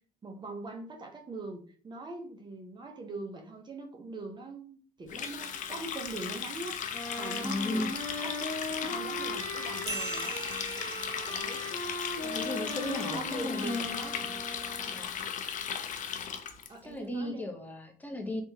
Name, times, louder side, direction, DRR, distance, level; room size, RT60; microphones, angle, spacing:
voice 1, 0.2-6.8 7.2-7.9 8.2-8.4 8.7-10.4 11.3-11.8 12.2-12.7 13.1-14.1 16.7-17.5, right 2 dB, 25° right, 2 dB, 0.7 m, -42 dB
Water tap faucet, 5.1-16.7, left 7 dB, 50° left, 0.5 m, -37 dB
Wind instrument woodwind instrument, 6.9-15.0, left 2 dB, 30° left, 1.4 m, -38 dB
voice 2, 7.4-7.9 12.4-14.0 14.9-15.1 16.8-18.4, left 1 dB, 10° left, 2 dB, 0.8 m, -35 dB
sound 1, 9.9-12.9, right 3 dB, 80° right, 1.3 m, -42 dB
3.6 x 2.8 x 2.7 m, 0.43 s
cardioid pair, 110°, 17 cm